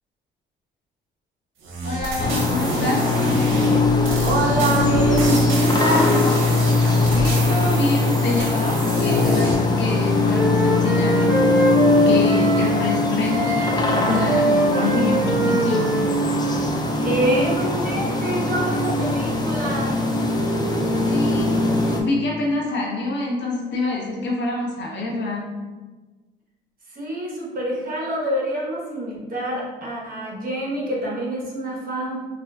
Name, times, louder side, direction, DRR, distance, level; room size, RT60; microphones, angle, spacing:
sound 1, 1.6-9.5, right 2 dB, 85° right, 0.6 m, -29 dB
voice 1, 1.8-3.2 7.1-15.9 21.0-25.5, left 2 dB, 65° left, -2 dB, 0.9 m, -26 dB
sound 2, 2.2-22.0, left 2 dB, 20° left, 0.4 m, -21 dB
voice 2, 4.2-6.2 17.0-20.0 26.9-32.2, right 1 dB, 45° right, -4 dB, 1.1 m, -26 dB
Wind instrument woodwind instrument, 9.4-12.9 13.3-17.0, right 2 dB, 15° right, 0.7 m, -24 dB
4.2 x 2.3 x 2.3 m, 1.3 s
cardioid pair, 90°, 20 cm